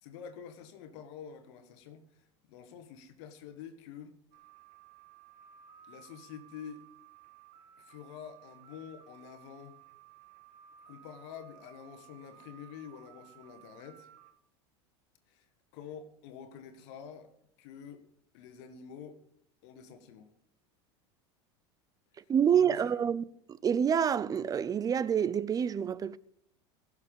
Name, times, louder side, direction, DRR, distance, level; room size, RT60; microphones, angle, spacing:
voice 1, 0.0-4.2 5.9-6.8 7.8-9.8 10.9-14.1 15.3-15.5 15.7-17.3 17.6-18.1 18.3-19.2 19.6-20.3 22.1-22.3 22.6-23.1, left 7 dB, 70° left, 1.6 m, -48 dB
sound 1, 4.3-14.3, right 10 dB, 60° right, 1.9 m, -57 dB
voice 2, 22.3-23.3 23.6-26.2, right 8 dB, 25° right, 0.5 m, -27 dB
16.5 x 6.7 x 5.4 m
hypercardioid pair, 100°, 15 cm